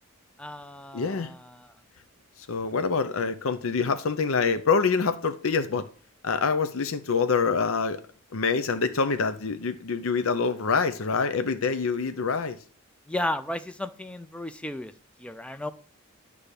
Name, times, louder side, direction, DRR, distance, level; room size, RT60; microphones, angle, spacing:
voice 1, 0.4-1.7 13.1-14.9 15.2-15.7, left 1 dB, 5° left, 0.4 m, -34 dB
voice 2, 0.9-1.3 2.5-5.9 6.2-8.0 8.3-12.6, left 5 dB, 75° left, 0.6 m, -26 dB
9.9 x 3.4 x 6.7 m
head